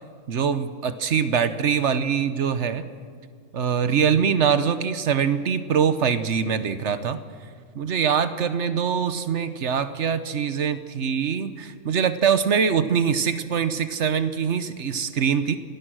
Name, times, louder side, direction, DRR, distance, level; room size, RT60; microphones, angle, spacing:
voice 1, 0.3-2.9 3.5-7.2 7.7-15.6, right 7 dB, 60° right, 11 dB, 1.2 m, -23 dB
26.5 x 18.0 x 6.2 m, 2.1 s
omnidirectional pair, 1.4 m